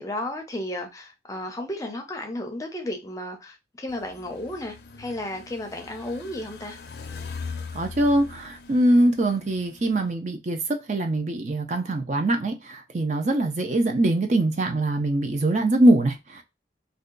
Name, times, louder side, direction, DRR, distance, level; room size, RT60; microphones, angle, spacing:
voice 1, 0.0-6.8, left 1 dB, 20° left, 0.5 m, -33 dB
sound 1, 3.9-10.1, left 4 dB, 65° left, 0.5 m, -41 dB
voice 2, 7.7-16.4, right 1 dB, 40° right, 0.5 m, -23 dB
2.7 x 2.2 x 3.8 m
head